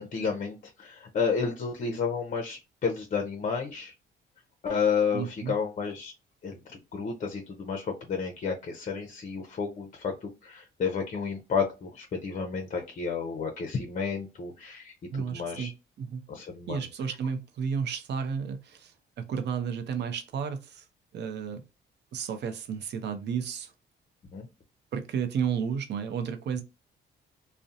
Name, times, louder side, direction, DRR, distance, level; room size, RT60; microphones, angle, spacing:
voice 1, 0.0-3.9 4.6-6.1 6.4-6.6 6.9-14.9 15.3-15.7 16.3-16.8 24.3-24.5, left 5 dB, 40° left, 0.5 m, -31 dB
voice 2, 5.1-5.5 15.1-16.2 16.7-20.8 21.1-21.6 22.1-23.7 24.9-26.6, right 6 dB, 60° right, 0.5 m, -32 dB
2.6 x 2.1 x 2.4 m
cardioid pair, 90°, 20 cm